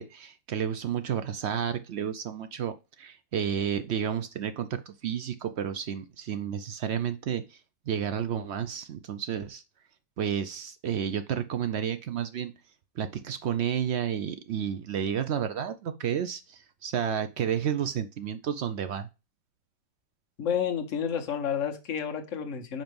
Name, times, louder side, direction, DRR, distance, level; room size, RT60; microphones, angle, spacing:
voice 1, 0.0-7.6 7.9-9.6 10.2-12.5 13.0-19.1, right 8 dB, 80° right, 0.6 m, -31 dB
voice 2, 20.4-22.8, left 8 dB, 50° left, 1.3 m, -30 dB
5.3 x 4.5 x 5.3 m
omnidirectional pair, 1.8 m